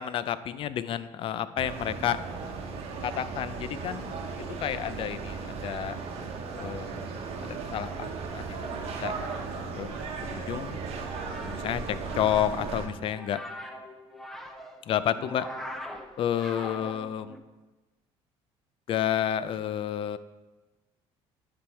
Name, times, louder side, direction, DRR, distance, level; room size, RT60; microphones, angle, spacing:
voice 1, 0.0-2.2 3.0-6.0 6.6-7.0 7.4-9.1 9.8-9.9 10.3-10.8 11.4-13.4 14.9-15.5 16.2-17.3 18.9-20.2, left 10 dB, 50° left, 14 dB, 0.4 m, -30 dB
sound 1, 1.6-12.9, right 4 dB, 60° right, 1.0 m, -36 dB
sound 2, 8.8-17.4, equal, ahead, 0.6 m, -43 dB
9.9 x 3.5 x 4.4 m, 1.2 s
cardioid pair, 115°, 12 cm